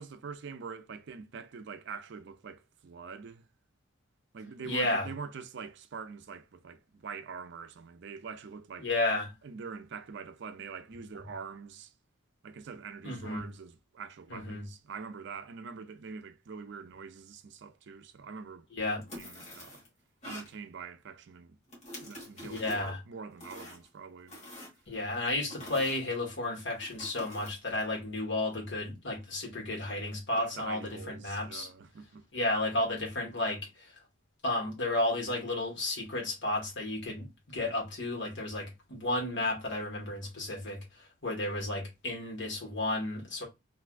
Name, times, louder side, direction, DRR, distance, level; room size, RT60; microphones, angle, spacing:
voice 1, 0.0-3.5 4.3-8.9 9.4-11.9 12.4-18.7 19.1-19.8 20.2-21.6 22.0-24.4 30.3-32.2, right 5 dB, 55° right, 0.4 m, -44 dB
voice 2, 4.6-5.1 8.8-9.3 13.0-13.4 14.3-14.6 18.7-19.0 22.4-23.0 24.9-31.7 32.3-33.9 34.4-43.4, left 2 dB, 60° left, 1.5 m, -33 dB
sound 1, 19.0-19.9 20.2-20.5 21.7-22.9 23.4-23.9 24.3-25.1 25.5-26.0 26.8-27.5, left 1 dB, 35° left, 1.6 m, -46 dB
3.3 x 2.6 x 2.4 m
head